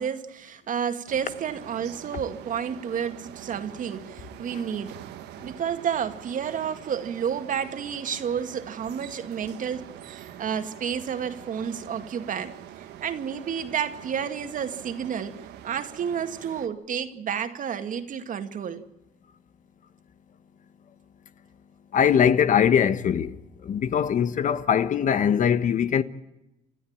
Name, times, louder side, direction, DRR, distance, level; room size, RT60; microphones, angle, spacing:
voice 1, 0.0-5.0 5.4-18.8, right 8 dB, 50° right, 2.2 m, -31 dB
sound 1, 1.1-16.7, right 12 dB, 80° right, 1.7 m, -44 dB
voice 2, 21.9-26.0, left 8 dB, 50° left, 1.2 m, -22 dB
29.5 x 13.0 x 8.9 m
cardioid pair, 110°, 17 cm